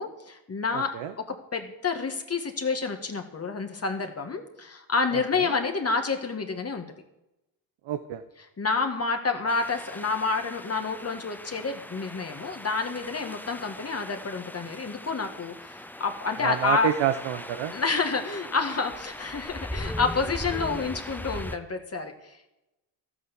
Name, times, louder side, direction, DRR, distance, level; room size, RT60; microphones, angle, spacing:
voice 1, 0.0-6.8 8.4-16.9 17.7-22.5, left 4 dB, 30° left, 5 dB, 1.8 m, -29 dB
voice 2, 7.9-8.2 16.4-17.7, right 10 dB, 75° right, 8 dB, 1.1 m, -27 dB
sound 1, 9.5-21.6, left 1 dB, 5° left, 0.8 m, -39 dB
12.5 x 8.8 x 7.1 m, 0.93 s
cardioid pair, 85°, 46 cm